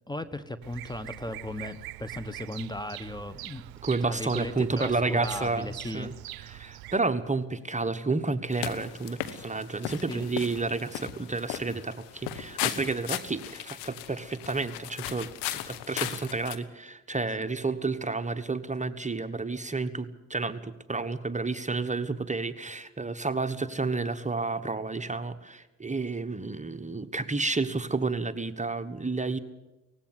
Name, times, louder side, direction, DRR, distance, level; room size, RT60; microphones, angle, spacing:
voice 1, 0.1-3.6 4.0-6.1 10.1-10.2 17.4-17.5, left 1 dB, 10° left, 13 dB, 1.2 m, -36 dB
Bird vocalization bird call bird song, 0.6-7.0, right 17 dB, 65° right, 0.7 m, -43 dB
voice 2, 3.8-6.1 6.4-29.4, right 3 dB, 20° right, 10 dB, 1.3 m, -31 dB
sound 1, 8.5-16.6, left 13 dB, 75° left, 1.3 m, -37 dB
19.0 x 16.0 x 9.6 m, 1.1 s
hypercardioid pair, 50°, 40 cm